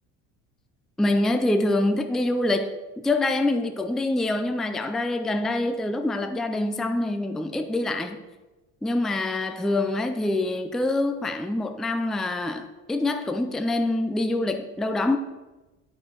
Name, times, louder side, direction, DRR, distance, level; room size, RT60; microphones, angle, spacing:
voice 1, 1.0-8.2 8.8-15.2, left 2 dB, ahead, 0.3 m, -25 dB
12.0 x 4.4 x 4.5 m
cardioid pair, 135°, 32 cm